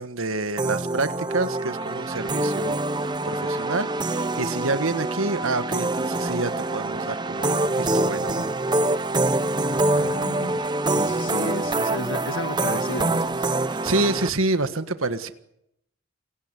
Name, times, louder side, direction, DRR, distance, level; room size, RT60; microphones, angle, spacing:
voice 1, 0.0-8.4 13.8-15.3, right 2 dB, 80° right, 10 dB, 1.6 m, -28 dB
sound 1, 0.6-14.3, right 2 dB, 20° right, 0.8 m, -25 dB
voice 2, 9.7-10.7 10.9-13.5, left 2 dB, 65° left, 9 dB, 1.6 m, -33 dB
29.5 x 17.5 x 8.3 m, 0.79 s
head